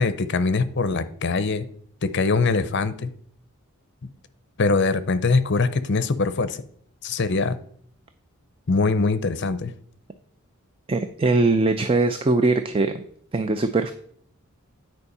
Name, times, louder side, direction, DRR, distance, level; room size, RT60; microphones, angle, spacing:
voice 1, 0.0-1.7 2.0-3.1 4.6-6.6 7.0-7.6 8.7-9.7, left 4 dB, 50° left, 13 dB, 0.6 m, -22 dB
voice 2, 10.9-13.0 13.3-13.9, right 3 dB, 25° right, 9 dB, 0.4 m, -21 dB
9.7 x 4.5 x 5.4 m, 0.64 s
head